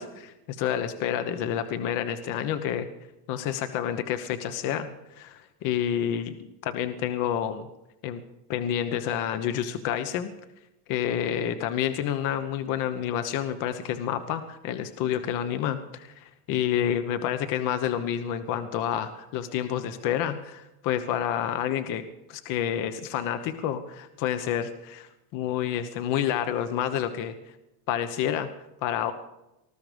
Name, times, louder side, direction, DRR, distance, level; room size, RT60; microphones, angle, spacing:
voice 1, 0.0-2.9 3.3-6.4 6.6-7.7 8.0-8.2 8.5-10.3 10.9-27.3 27.9-28.5 28.8-29.1, left 10 dB, 40° left, 10 dB, 1.1 m, -29 dB
20.0 x 14.0 x 5.2 m, 0.92 s
supercardioid pair, 160°, 50 cm